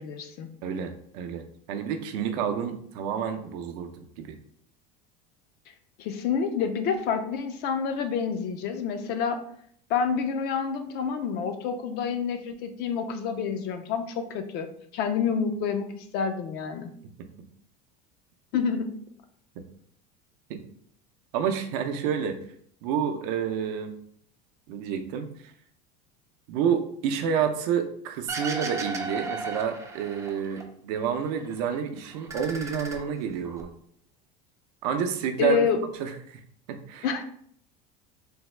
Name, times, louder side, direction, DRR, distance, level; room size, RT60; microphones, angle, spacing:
voice 1, 0.0-0.5 6.0-9.4 9.9-14.7 14.9-16.9 18.5-19.0 35.4-35.8 37.0-37.2, left 6 dB, 50° left, 8 dB, 0.4 m, -28 dB
voice 2, 0.6-4.4 20.5-20.6 21.3-22.4 22.8-23.9 24.7-25.3 26.5-33.7 34.8-35.6 36.0-36.4 36.7-37.1, right 7 dB, 75° right, 6 dB, 0.5 m, -29 dB
sound 1, 28.3-30.6 31.0-31.8 32.1-33.6, right 3 dB, 15° right, 0.4 m, -35 dB
3.4 x 2.1 x 3.2 m, 0.63 s
supercardioid pair, 135°, 21 cm